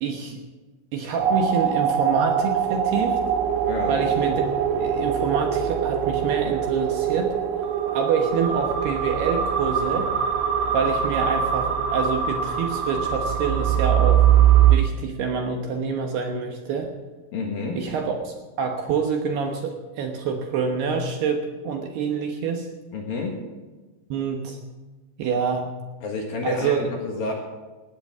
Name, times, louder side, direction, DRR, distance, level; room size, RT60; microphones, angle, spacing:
voice 1, 0.0-0.4 0.9-3.2 3.9-4.4 4.8-7.4 7.9-10.1 10.7-14.3 14.7-16.9 17.8-22.7 24.1-24.6 25.2-25.7 26.4-26.8, right 5 dB, 70° right, 2 dB, 2.7 m, -26 dB
sound 1, 1.2-14.8, right 9 dB, 85° right, 3.6 m, -22 dB
voice 2, 3.7-4.0 17.3-17.8 22.9-23.3 26.0-27.3, left 3 dB, 55° left, 0 dB, 2.9 m, -29 dB
19.5 x 17.0 x 3.7 m, 1.3 s
omnidirectional pair, 5.8 m